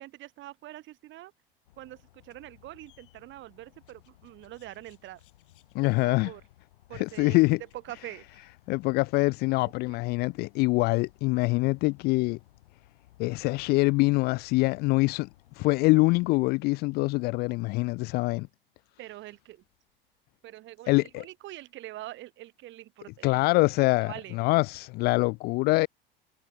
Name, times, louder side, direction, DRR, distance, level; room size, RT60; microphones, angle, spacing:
voice 1, 0.0-1.3 1.8-5.2 5.8-6.4 6.9-7.4 7.7-8.5 9.9-10.0 19.0-19.6 20.4-23.5 24.0-24.4, right 15 dB, 40° right, 2.9 m, -44 dB
sound 1, 1.7-16.4, left 15 dB, 65° left, 5.9 m, -60 dB
voice 2, 5.7-6.3 7.0-7.6 8.7-12.4 13.2-15.3 15.6-18.5 20.9-21.2 23.2-25.9, left 24 dB, 35° left, 0.4 m, -24 dB
figure-of-eight pair, 80°, 29 cm